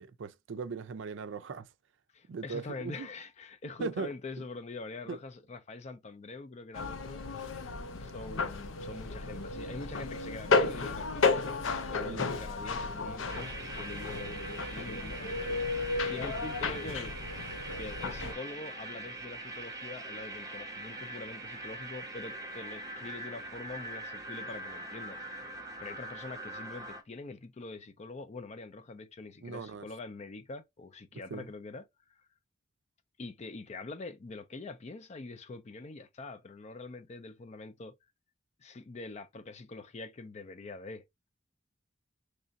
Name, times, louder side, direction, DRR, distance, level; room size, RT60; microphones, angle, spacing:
voice 1, 0.0-1.7 2.3-3.1 3.8-4.1 4.4-4.5 5.1-5.2 12.0-12.3 29.4-29.9 31.3-31.5, right 5 dB, 65° right, 0.4 m, -39 dB
voice 2, 2.1-7.5 8.0-15.8 16.1-17.2 17.8-25.4 25.8-32.2 33.2-38.0 38.6-41.0, left 3 dB, 35° left, 0.4 m, -44 dB
sound 1, 6.7-18.3, left 4 dB, 80° left, 0.6 m, -33 dB
sound 2, 13.3-27.0, right 2 dB, 15° right, 0.8 m, -42 dB
3.2 x 2.5 x 3.9 m
head